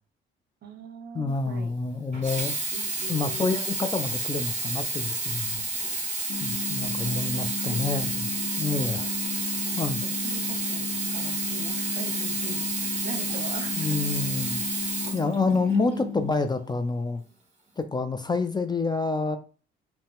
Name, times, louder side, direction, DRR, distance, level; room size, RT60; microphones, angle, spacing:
voice 1, 0.6-1.8 2.7-3.6 7.6-8.2 10.0-14.0 15.7-16.4, right 4 dB, 55° right, 6 dB, 0.9 m, -42 dB
voice 2, 1.1-2.5 3.1-5.7 6.4-9.1 9.8-10.0 13.7-14.6 15.1-17.2 17.8-19.4, left 3 dB, 20° left, 9 dB, 0.4 m, -28 dB
Sink (filling or washing), 2.1-15.9 16.6-16.7, right 2 dB, 35° right, 1.8 m, -30 dB
sound 1, 6.3-16.3, left 4 dB, 85° left, 0.6 m, -35 dB
5.4 x 2.1 x 3.5 m, 0.38 s
cardioid pair, 90°, 20 cm